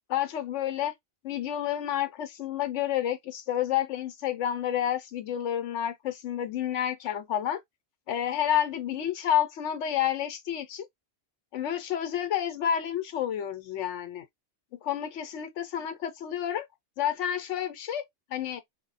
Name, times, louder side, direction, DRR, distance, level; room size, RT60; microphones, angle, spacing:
voice 1, 0.1-0.9 1.2-7.6 8.1-10.8 11.5-14.2 14.8-16.6 17.0-18.0 18.3-18.6, left 10 dB, 80° left, 1.0 m, -29 dB
2.3 x 2.1 x 3.9 m
omnidirectional pair, 1.2 m